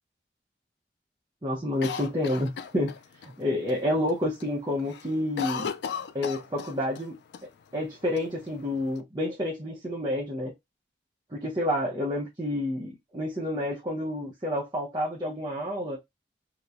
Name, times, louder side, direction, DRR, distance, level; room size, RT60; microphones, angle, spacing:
voice 1, 1.4-2.9 3.2-5.7 6.1-7.1 7.7-10.5 11.3-16.0, left 1 dB, 25° right, 0.6 m, -29 dB
Cough, 1.8-3.3 3.7-3.8 4.1-4.5 4.8-7.1 7.3-7.4 8.2-9.0, left 6 dB, 70° left, 0.3 m, -35 dB
2.9 x 2.1 x 2.4 m
head